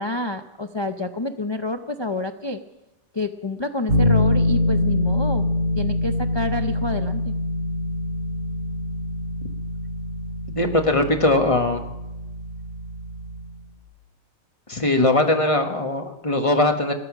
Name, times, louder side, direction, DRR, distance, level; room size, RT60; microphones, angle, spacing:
voice 1, 0.0-2.6 3.1-5.5 5.8-7.3, left 2 dB, 40° left, 6 dB, 0.3 m, -28 dB
Bass guitar, 3.9-13.8, left 2 dB, 55° right, 7.3 m, -25 dB
voice 2, 10.5-11.8 14.7-16.9, left 2 dB, 25° left, 5 dB, 1.1 m, -20 dB
16.0 x 13.5 x 6.0 m, 1.0 s
omnidirectional pair, 1.4 m